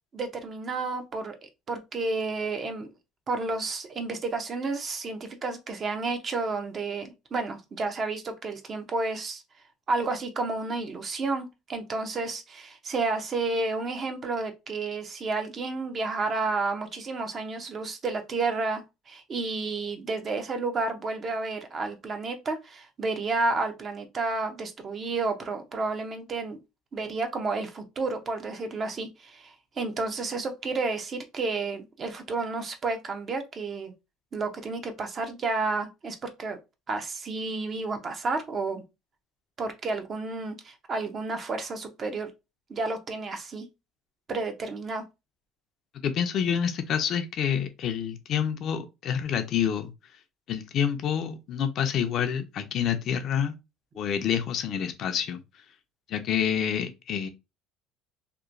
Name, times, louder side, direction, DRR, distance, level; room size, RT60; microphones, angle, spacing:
voice 1, 0.1-2.9 3.3-9.4 9.9-26.6 26.9-33.9 34.3-36.6 36.9-38.8 39.6-42.3 42.7-43.7 44.3-45.0, right 3 dB, 35° right, 0.6 m, -31 dB
voice 2, 46.0-49.9 50.5-53.5 54.0-55.4 56.1-57.3, left 8 dB, 55° left, 0.5 m, -28 dB
2.9 x 2.1 x 2.5 m
supercardioid pair, 105°, 0 cm